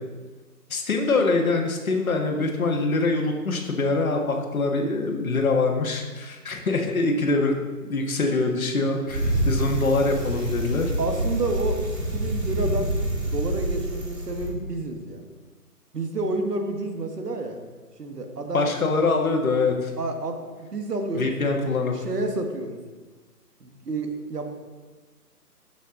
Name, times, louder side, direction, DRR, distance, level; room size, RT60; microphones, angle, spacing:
voice 1, 0.7-10.9 18.5-19.9 21.1-21.9, left 3 dB, 60° left, 2 dB, 1.7 m, -24 dB
Bicycle, 9.1-14.5, right 1 dB, 60° right, 3.0 m, -27 dB
voice 2, 11.0-12.9 13.2-15.2 15.9-17.6 18.0-18.7 20.0-20.4 20.7-21.3 21.6-22.8 23.6-24.4, right 2 dB, 75° right, 4 dB, 1.8 m, -29 dB
12.0 x 6.0 x 3.8 m, 1.3 s
figure-of-eight pair, 150°, 48 cm